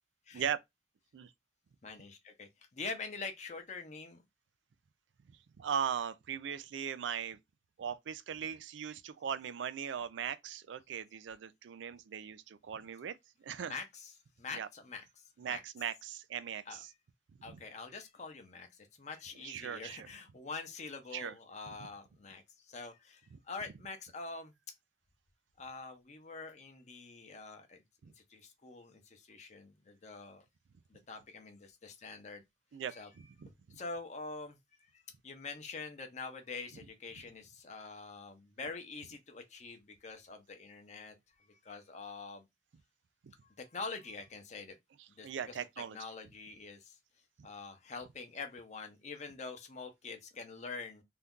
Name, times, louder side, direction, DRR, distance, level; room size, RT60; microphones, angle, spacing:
voice 1, 1.8-4.2 13.6-14.1 14.4-15.0 15.4-15.6 16.7-16.8 17.4-23.2 23.5-24.5 25.6-27.8 28.3-30.4 30.9-32.4 32.9-33.1 33.8-34.6 34.9-41.1 41.6-42.4 43.6-44.8 45.1-45.6 45.9-47.0 47.4-51.0, left 4 dB, 40° left, 0.6 m, -45 dB
voice 2, 5.6-7.4 7.8-13.8 14.5-14.7 15.4-16.9 17.5-17.6 19.4-20.1 21.1-21.3 23.3-23.4 28.0-28.1 32.7-33.8 43.2-43.3 45.2-46.0, right 8 dB, 85° right, 0.4 m, -39 dB
2.7 x 2.3 x 3.5 m
head